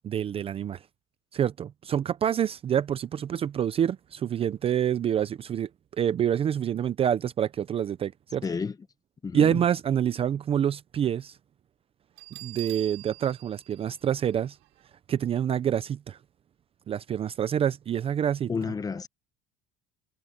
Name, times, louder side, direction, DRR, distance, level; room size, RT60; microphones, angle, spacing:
voice 1, 0.0-0.8 1.3-5.7 6.0-8.4 9.3-11.4 12.4-14.6 15.1-16.2 16.9-18.5, right 9 dB, 30° right, 0.5 m, -27 dB
voice 2, 8.4-8.8 9.2-9.6 18.5-19.1, left 5 dB, 20° left, 0.9 m, -30 dB
Bell, 12.2-14.9, right 27 dB, 80° right, 5.9 m, -45 dB
cardioid pair, 145°, 20 cm